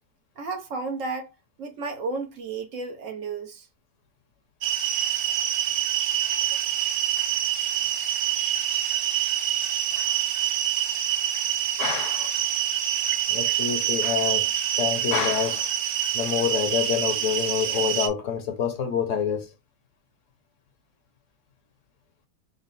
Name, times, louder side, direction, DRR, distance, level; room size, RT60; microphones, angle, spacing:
voice 1, 0.4-1.3 1.6-3.7 6.5-6.7, right 3 dB, 65° right, 1.1 m, -33 dB
sound 1, 4.6-18.1, right 11 dB, 85° right, 1.1 m, -26 dB
voice 2, 11.8-12.4 13.3-14.5 14.7-15.7 16.1-19.5, left 8 dB, 65° left, 1.0 m, -27 dB
3.8 x 2.0 x 4.0 m
omnidirectional pair, 1.5 m